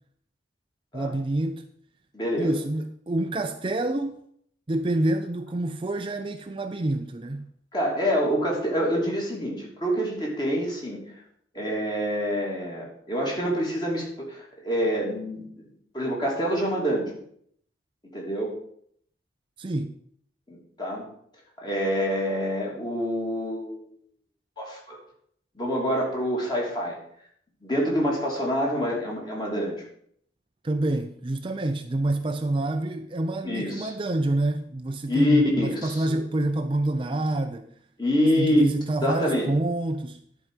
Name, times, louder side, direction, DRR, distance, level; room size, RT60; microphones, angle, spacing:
voice 1, 0.9-1.7 2.4-4.2 4.7-7.5 19.6-19.9 30.6-37.7 38.4-40.2, right 2 dB, 25° right, 0.5 m, -27 dB
voice 2, 2.1-2.5 7.7-11.0 11.5-15.6 15.9-17.2 18.1-18.5 20.5-21.1 21.6-23.8 24.6-25.0 25.5-27.0 27.6-29.8 33.4-33.9 35.1-36.2 38.0-38.6 39.0-39.5, equal, 25° left, 3.0 m, -26 dB
11.0 x 4.8 x 7.6 m
head